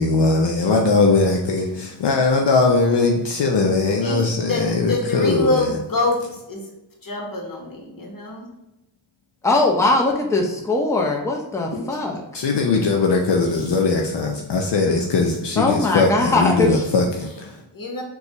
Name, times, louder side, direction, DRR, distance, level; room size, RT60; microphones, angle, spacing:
voice 1, 0.0-5.8 12.3-17.6, left 3 dB, 65° left, 0.6 m, -20 dB
voice 2, 4.0-6.2 6.5-6.6 7.0-8.5 11.7-12.0 15.2-15.3 17.7-18.0, left 2 dB, 45° left, 1.2 m, -25 dB
voice 3, 9.4-12.2 15.6-16.9, left 2 dB, 5° left, 0.7 m, -20 dB
3.9 x 2.3 x 2.9 m
cardioid pair, 45°, 47 cm